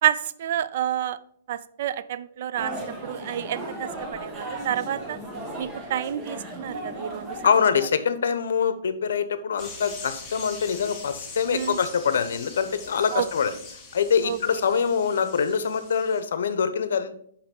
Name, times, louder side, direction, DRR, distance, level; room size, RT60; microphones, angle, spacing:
voice 1, 0.0-1.2 1.5-5.2 5.6-7.4 11.5-11.8 13.1-13.3 14.2-14.4, right 11 dB, 50° right, 16 dB, 0.4 m, -29 dB
sound 1, 2.6-7.6, right 1 dB, 15° right, 1.1 m, -36 dB
voice 2, 7.4-13.5 13.9-17.1, left 6 dB, 75° left, 12 dB, 0.8 m, -24 dB
bottlerocket birds, 9.6-16.2, left 4 dB, 10° left, 1.1 m, -42 dB
5.8 x 4.9 x 5.2 m, 0.67 s
hypercardioid pair, 165°, 0 cm